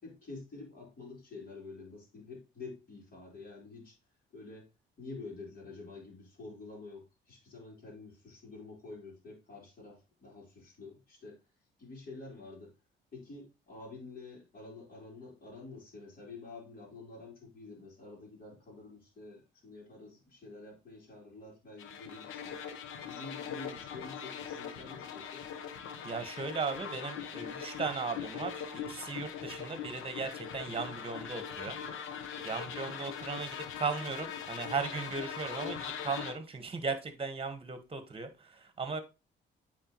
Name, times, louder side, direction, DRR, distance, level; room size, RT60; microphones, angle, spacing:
voice 1, 0.0-4.0 4.3-4.7 5.0-11.4 11.8-12.7 13.1-22.6 23.1-25.4, left 3 dB, 45° left, -4 dB, 3.7 m, -48 dB
sound 1, 21.8-36.3, left 7 dB, 90° left, 0.9 m, -41 dB
voice 2, 26.0-31.8 32.4-39.0, right 4 dB, 30° right, 9 dB, 1.4 m, -37 dB
8.8 x 4.5 x 3.0 m, 0.28 s
cardioid pair, 90°, 20 cm